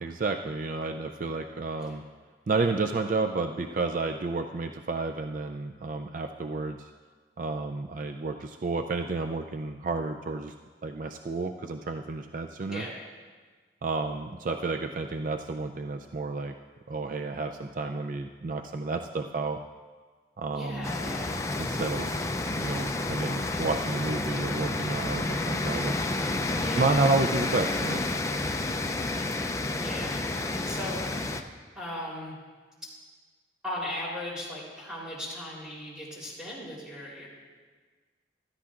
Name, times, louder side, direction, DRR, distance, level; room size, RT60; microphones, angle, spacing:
voice 1, 0.0-2.0 2.5-6.9 7.4-10.5 10.8-12.9 13.8-16.5 16.9-19.6 20.4-20.9 21.6-22.1 22.5-26.1 26.8-28.0, right 3 dB, 45° right, 5 dB, 0.4 m, -31 dB
voice 2, 20.5-21.4 26.6-27.2 29.7-31.0 31.8-32.4 33.6-37.3, left 1 dB, 5° right, -6 dB, 3.5 m, -38 dB
Dante's Wind, 20.8-31.4, left 2 dB, 15° left, 0.5 m, -30 dB
16.0 x 13.0 x 2.5 m, 1.5 s
head